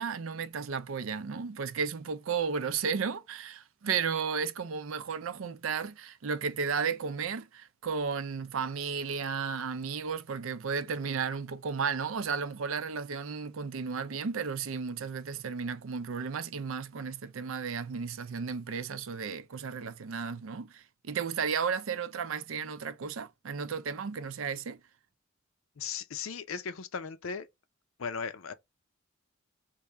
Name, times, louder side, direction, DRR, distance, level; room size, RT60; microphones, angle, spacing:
voice 1, 0.0-24.8, right 6 dB, 80° right, 0.5 m, -34 dB
voice 2, 25.8-27.5 28.0-28.5, left 6 dB, 85° left, 0.6 m, -37 dB
3.1 x 2.7 x 3.4 m
head